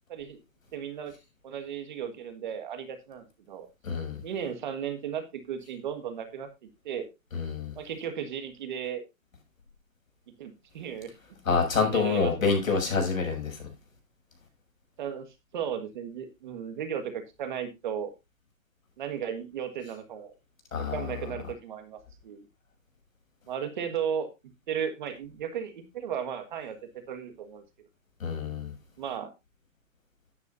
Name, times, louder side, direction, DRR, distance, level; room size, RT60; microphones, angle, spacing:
voice 1, 0.1-0.4 0.7-1.1 1.4-3.7 4.2-6.5 6.8-7.1 7.7-9.0 10.4-11.4 11.8-12.5 15.0-15.3 15.5-18.1 19.0-20.3 20.8-22.5 23.5-24.3 24.7-26.8 27.1-27.6 29.0-29.3, right 8 dB, 35° right, 1.7 m, -35 dB
voice 2, 3.8-4.2 7.3-7.7 11.5-13.6 20.7-21.1 28.2-28.7, left 5 dB, 80° left, 6.9 m, -27 dB
13.0 x 9.8 x 2.6 m
hypercardioid pair, 170°, 41 cm